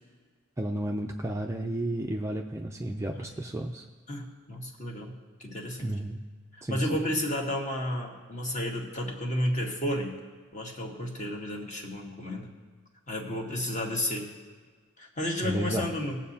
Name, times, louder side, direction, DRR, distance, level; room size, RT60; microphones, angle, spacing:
voice 1, 0.6-3.8 5.8-6.2 6.6-6.9 15.4-15.9, right 1 dB, 15° right, 2 dB, 0.4 m, -32 dB
voice 2, 4.1-5.9 6.7-10.2 10.5-12.5 13.1-14.3 15.0-16.2, left 1 dB, 35° left, 0 dB, 1.4 m, -32 dB
21.0 x 7.5 x 2.8 m, 1.5 s
head